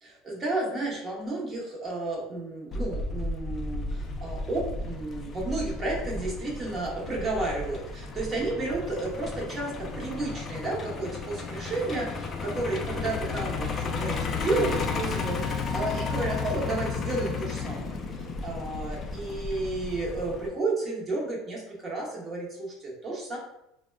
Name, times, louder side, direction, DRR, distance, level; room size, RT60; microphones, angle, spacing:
voice 1, 0.0-23.4, right 2 dB, 25° right, -3 dB, 0.8 m, -32 dB
Truck, 2.7-20.5, left 4 dB, 30° left, 0.3 m, -33 dB
3.5 x 2.1 x 2.2 m, 0.82 s
cardioid pair, 140°, 0 cm